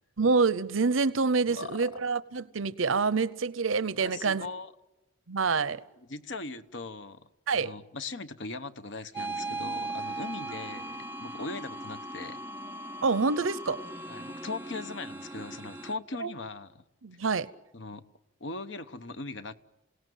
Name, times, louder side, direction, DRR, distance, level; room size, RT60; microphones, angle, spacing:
voice 1, 0.2-4.5 5.3-5.8 7.5-7.7 13.0-13.8 16.2-16.3 17.0-17.5, right 4 dB, 85° right, 0.8 m, -27 dB
voice 2, 1.5-2.0 3.9-4.7 6.0-12.4 14.1-16.8 17.7-18.0 18.4-19.6, left 3 dB, 65° left, 1.0 m, -40 dB
sound 1, 9.1-15.9, right 2 dB, 10° right, 0.8 m, -38 dB
27.5 x 17.5 x 9.2 m
head